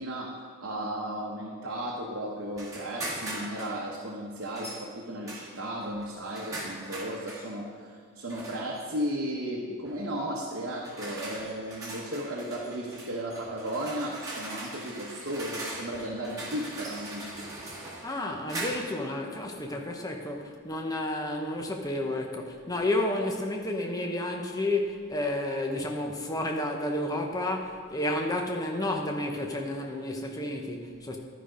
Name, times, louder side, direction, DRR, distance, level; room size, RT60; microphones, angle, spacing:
voice 1, 0.0-17.5, right 1 dB, 55° right, -3 dB, 0.9 m, -35 dB
sound 1, 2.5-3.8 4.5-4.8 5.2-7.5 8.3-8.8 9.8-10.1 10.7-19.0, right 1 dB, 15° right, 1.9 m, -40 dB
voice 2, 18.0-31.2, left 1 dB, 15° left, 2 dB, 0.7 m, -31 dB
11.5 x 5.1 x 5.1 m, 2.2 s
head